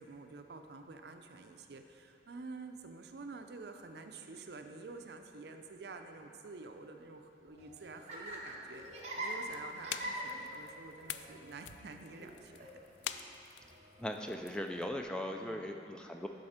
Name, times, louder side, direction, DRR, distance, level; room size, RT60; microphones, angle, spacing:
voice 1, 0.0-12.7 15.3-15.7, right 3 dB, 65° right, 6 dB, 0.5 m, -49 dB
Laughter, 7.5-15.0, right 1 dB, 35° right, 1.0 m, -45 dB
sound 1, 9.3-14.9, left 10 dB, 90° left, 0.3 m, -47 dB
voice 2, 14.0-16.3, left 1 dB, 5° left, 3 dB, 0.3 m, -39 dB
11.5 x 4.3 x 5.0 m, 2.8 s
head